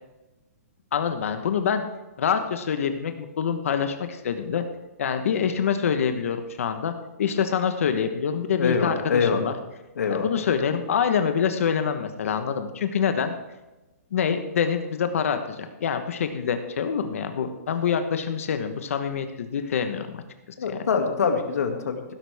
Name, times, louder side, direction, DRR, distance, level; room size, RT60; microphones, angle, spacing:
voice 1, 0.9-1.8 2.2-4.6 5.0-6.9 7.2-9.5 10.1-13.3 14.1-20.2 20.7-20.8, left 7 dB, 60° left, 8 dB, 1.1 m, -26 dB
voice 2, 8.6-9.4 10.0-10.3 20.6-22.0, left 5 dB, 80° left, 4 dB, 2.3 m, -24 dB
16.0 x 12.5 x 3.5 m, 1.0 s
hypercardioid pair, 170°, 8 cm